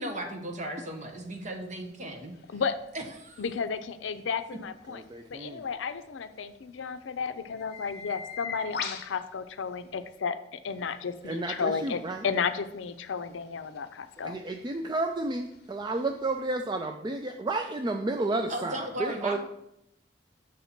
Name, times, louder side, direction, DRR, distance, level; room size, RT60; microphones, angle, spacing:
voice 1, 0.0-2.4 2.9-3.4 18.5-19.4, right 1 dB, 40° right, 3 dB, 1.1 m, -36 dB
sound 1, 0.9-10.2 10.6-16.5, left 5 dB, 60° left, 0.7 m, -45 dB
voice 2, 3.4-5.0 5.3-14.4, left 5 dB, 85° left, 11 dB, 0.5 m, -33 dB
voice 3, 4.9-5.7 11.2-12.3 14.2-19.4, right 2 dB, 25° right, 5 dB, 0.3 m, -32 dB
6.4 x 4.1 x 5.9 m, 0.82 s
head